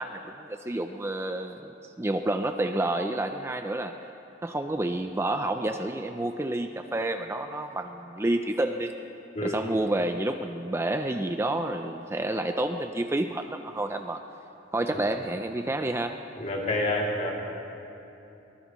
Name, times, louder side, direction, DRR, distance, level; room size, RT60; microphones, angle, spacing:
voice 1, 0.0-4.0 4.4-8.9 9.4-14.2 14.7-16.2, right 1 dB, 15° right, 6 dB, 0.4 m, -29 dB
voice 2, 16.4-17.3, left 1 dB, 40° left, -3 dB, 2.7 m, -28 dB
23.0 x 19.0 x 3.1 m, 2.9 s
head